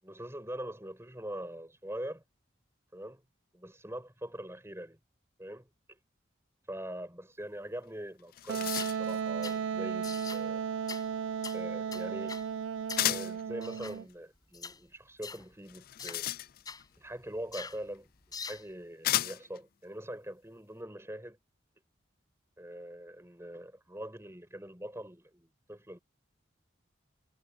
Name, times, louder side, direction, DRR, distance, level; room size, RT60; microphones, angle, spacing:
voice 1, 0.0-2.2 2.9-3.2 3.5-5.0 5.4-6.0 6.7-10.6 11.5-12.4 13.0-16.3 17.0-18.1 18.4-21.4 22.6-26.0, right 1 dB, 15° right, 5.0 m, -43 dB
sound 1, 7.8-7.9 8.2-9.2 13.0-13.4 15.7-16.9 18.0-18.1 19.0-19.6, left 13 dB, 45° left, 0.3 m, -33 dB
Wind instrument woodwind instrument, 8.5-14.0, right 7 dB, 75° right, 0.3 m, -35 dB
sound 2, 8.6-9.0 9.4-9.6 10.0-10.4 10.9-11.1 11.4-11.6 11.9-12.5 12.9-13.1 13.6-14.0 14.5-14.8 15.2-15.4 16.0-16.2 16.6-16.8 17.5-17.8 18.3-18.6, left 5 dB, 20° left, 4.6 m, -43 dB
head